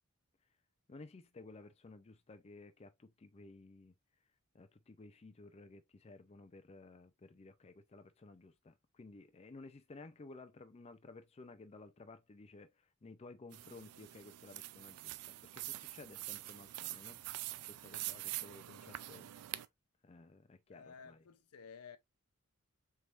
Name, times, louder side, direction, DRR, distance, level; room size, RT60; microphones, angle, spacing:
voice 1, 0.9-3.9 4.5-17.2 17.7-19.3 20.0-21.2, left 3 dB, 30° left, 0.4 m, -55 dB
sound 1, 13.5-19.6, right 15 dB, 80° right, 0.4 m, -45 dB
voice 2, 20.7-22.0, left 6 dB, 80° left, 0.6 m, -54 dB
4.5 x 3.4 x 2.4 m
head